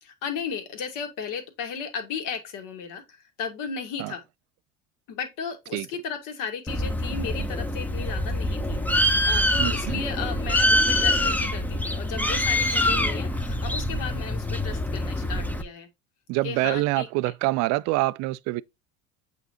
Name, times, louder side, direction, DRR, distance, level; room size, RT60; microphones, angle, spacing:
voice 1, 0.0-4.2 5.1-15.9 16.4-17.3, left 6 dB, 55° left, 2.1 m, -35 dB
Bird, 6.7-15.6, left 1 dB, 5° left, 0.8 m, -25 dB
voice 2, 9.6-10.0 16.3-18.6, right 20 dB, 45° right, 0.4 m, -25 dB
8.1 x 4.0 x 2.9 m
hypercardioid pair, 70°, 38 cm